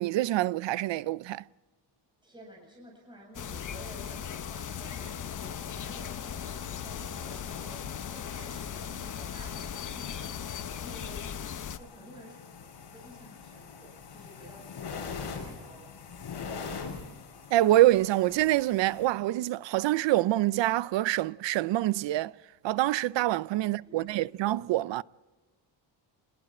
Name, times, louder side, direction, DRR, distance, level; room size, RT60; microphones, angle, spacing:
voice 1, 0.0-1.4 17.5-22.3 22.6-25.0, right 15 dB, 70° right, 0.6 m, -26 dB
voice 2, 2.2-10.4 10.8-12.4 12.9-16.0 16.4-17.0 23.6-24.2, equal, 10° right, 7.7 m, -52 dB
sound 1, 3.3-11.8, left 8 dB, 40° left, 1.0 m, -38 dB
sound 2, 4.7-19.1, left 5 dB, 60° left, 6.5 m, -44 dB
29.0 x 20.5 x 4.3 m
cardioid pair, 155°, 45 cm